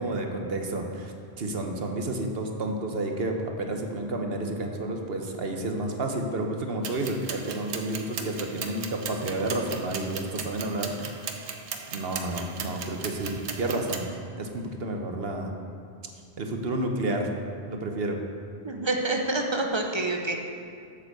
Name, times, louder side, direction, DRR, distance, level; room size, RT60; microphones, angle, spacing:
voice 1, 0.0-11.3 11.9-14.1 14.4-15.5 16.4-17.3 17.7-18.2, right 2 dB, 65° right, 3 dB, 1.2 m, -30 dB
sound 1, 6.8-14.0, right 6 dB, 90° right, 1.1 m, -37 dB
voice 2, 18.6-20.4, right 2 dB, 25° right, 2 dB, 0.9 m, -27 dB
8.3 x 7.6 x 6.7 m, 2.3 s
omnidirectional pair, 1.1 m